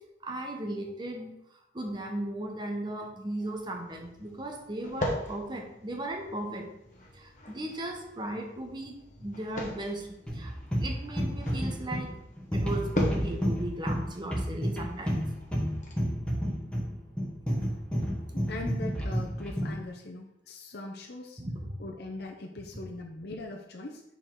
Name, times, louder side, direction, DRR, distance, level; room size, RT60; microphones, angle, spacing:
voice 1, 0.2-1.3 1.7-6.7 7.1-10.5 10.8-12.1 12.5-15.2 21.4-21.8, right 1 dB, 25° right, 2 dB, 1.0 m, -36 dB
sound 1, 3.5-15.9, equal, 45° left, 1.2 m, -41 dB
sound 2, 10.3-19.8, equal, 5° left, 1.3 m, -31 dB
voice 2, 18.3-21.4 21.8-24.0, left 2 dB, 65° left, 0 dB, 0.7 m, -41 dB
6.6 x 4.8 x 3.9 m, 0.87 s
head